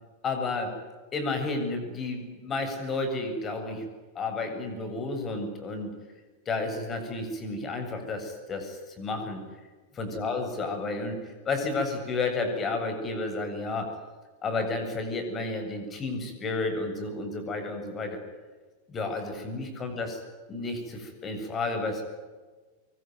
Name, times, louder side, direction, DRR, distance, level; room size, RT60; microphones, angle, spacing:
voice 1, 0.2-0.7 1.1-3.9 4.1-5.9 6.5-9.4 10.0-13.9 14.4-18.2 18.9-20.2 20.5-22.0, left 3 dB, 25° left, 6 dB, 7.8 m, -31 dB
25.0 x 24.5 x 9.5 m, 1.3 s
figure-of-eight pair, 90°, 0 cm